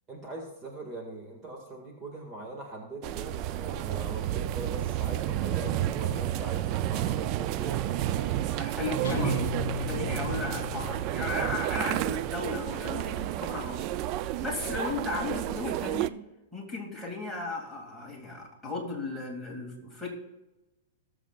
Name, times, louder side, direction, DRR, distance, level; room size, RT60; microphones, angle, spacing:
voice 1, 0.1-9.5 14.6-14.8, right 2 dB, 20° right, 1 dB, 1.8 m, -41 dB
sound 1, 3.0-16.1, right 13 dB, 35° right, 0.4 m, -31 dB
voice 2, 8.6-9.4 9.9-13.9 14.2-16.2 16.5-20.1, left 3 dB, ahead, -5 dB, 2.3 m, -35 dB
Guitar, 9.0-11.6, left 10 dB, 90° left, 0.5 m, -37 dB
19.5 x 7.4 x 2.4 m, 1.0 s
supercardioid pair, 155°, 0 cm